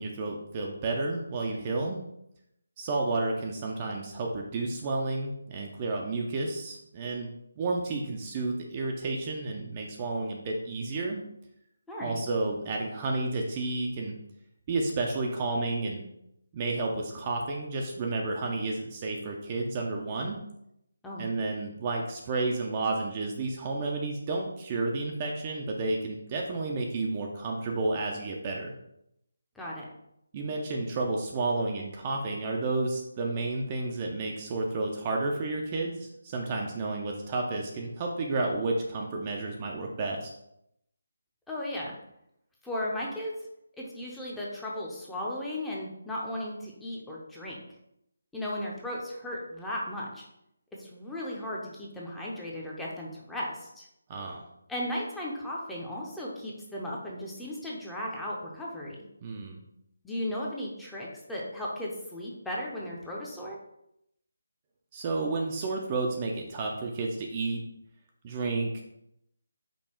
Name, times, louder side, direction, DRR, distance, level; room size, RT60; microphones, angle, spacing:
voice 1, 0.0-2.0 2.8-7.3 7.6-11.2 12.0-14.1 14.7-16.0 16.5-20.4 21.2-28.7 30.3-40.3 54.1-54.4 59.2-59.6 64.9-67.6 68.2-68.8, right 3 dB, 25° right, 0 dB, 0.5 m, -31 dB
voice 2, 11.9-12.2 21.0-21.3 29.6-29.8 41.5-41.9 42.6-43.3 43.8-47.6 48.3-50.2 50.8-53.9 54.7-59.1 60.0-63.6, left 1 dB, 5° left, -5 dB, 0.7 m, -36 dB
5.4 x 2.3 x 4.3 m, 0.80 s
figure-of-eight pair, 155°, 0 cm